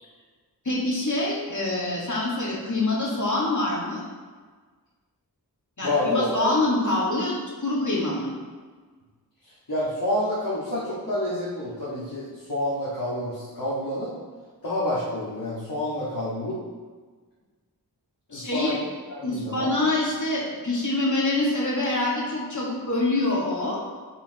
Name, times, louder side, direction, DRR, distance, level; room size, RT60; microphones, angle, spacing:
voice 1, 0.6-4.0 5.8-8.3 18.3-18.8 19.2-23.8, left 2 dB, 50° left, -5 dB, 2.1 m, -25 dB
voice 2, 5.8-6.5 9.7-14.1 14.6-16.6 18.3-18.7 19.1-19.7, left 1 dB, 65° left, -9 dB, 2.0 m, -28 dB
9.4 x 5.4 x 3.1 m, 1.5 s
wide cardioid pair, 50°, 39 cm